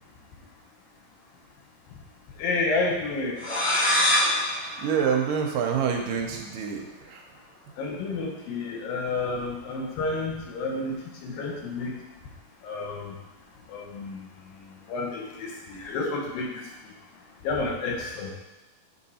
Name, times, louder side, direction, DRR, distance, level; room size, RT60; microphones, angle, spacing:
voice 1, 2.4-3.3 7.8-11.0 11.2-11.9 12.6-13.1 13.7-14.3 14.9-16.6 17.4-18.3, left 3 dB, 80° left, 0 dB, 2.8 m, -30 dB
sound 1, 3.4-6.0, left 1 dB, 45° left, 1.5 m, -25 dB
voice 2, 4.3-7.2, right 7 dB, 75° right, 2 dB, 2.3 m, -27 dB
9.2 x 3.8 x 4.2 m, 1.0 s
omnidirectional pair, 4.0 m